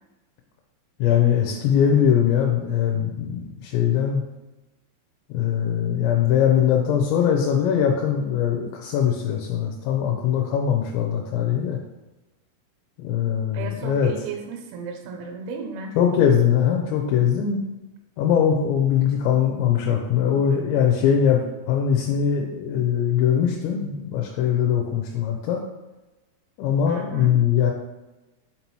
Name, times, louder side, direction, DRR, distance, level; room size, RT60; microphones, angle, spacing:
voice 1, 1.0-4.2 5.3-11.8 13.0-14.1 16.0-17.6 18.2-25.6 26.6-27.7, left 8 dB, 85° left, 0 dB, 2.9 m, -21 dB
voice 2, 13.5-16.0 26.9-27.4, right 5 dB, 75° right, 3 dB, 2.3 m, -34 dB
5.9 x 5.5 x 3.0 m, 1.1 s
omnidirectional pair, 5.2 m